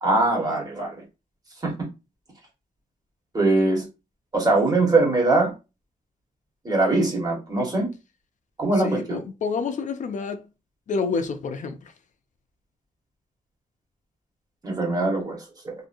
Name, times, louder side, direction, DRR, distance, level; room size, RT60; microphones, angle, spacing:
voice 1, 0.0-1.0 1.6-1.7 3.3-3.9 4.3-5.5 6.6-7.9 8.6-9.2 14.6-15.7, right 2 dB, 25° right, 1.3 m, -22 dB
voice 2, 8.8-10.5 10.9-11.9, left 5 dB, 60° left, 0.5 m, -28 dB
2.8 x 2.7 x 2.5 m
wide cardioid pair, 130°, 15 cm